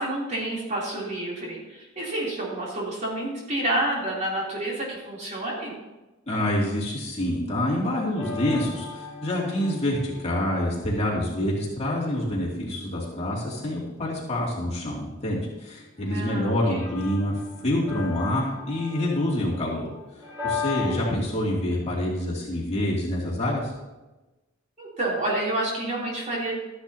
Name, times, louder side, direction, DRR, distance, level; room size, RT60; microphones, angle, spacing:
voice 1, 0.0-5.7 16.0-16.9 20.8-21.2 24.8-26.5, right 1 dB, 35° right, -5 dB, 3.2 m, -29 dB
voice 2, 6.3-19.9 20.4-23.7, left 1 dB, 35° left, -5 dB, 2.6 m, -27 dB
sound 1, 8.2-21.1, left 5 dB, 15° right, 3.8 m, -38 dB
13.5 x 10.0 x 2.9 m, 1.1 s
head